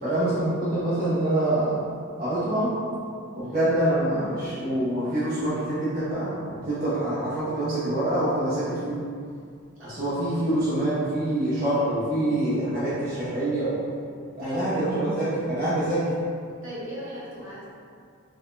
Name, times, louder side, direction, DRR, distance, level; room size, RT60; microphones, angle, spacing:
voice 1, 0.0-1.8 2.2-2.7 3.3-9.0 9.8-13.7 14.3-16.0, right 1 dB, 45° right, -12 dB, 0.8 m, -25 dB
voice 2, 9.8-10.2 14.4-14.7 16.6-17.6, right 1 dB, 65° right, -9 dB, 1.1 m, -38 dB
4.7 x 2.2 x 2.5 m, 2.3 s
head